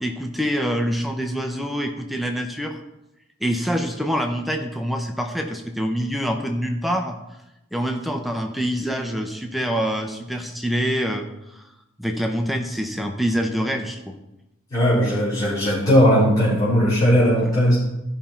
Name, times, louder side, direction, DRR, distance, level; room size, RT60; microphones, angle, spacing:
voice 1, 0.0-2.8 3.4-7.2 7.7-11.6 12.0-14.2 17.4-17.5, equal, ahead, 4 dB, 0.7 m, -25 dB
voice 2, 14.7-17.8, equal, 20° left, -12 dB, 4.2 m, -18 dB
13.5 x 5.6 x 4.4 m, 0.92 s
head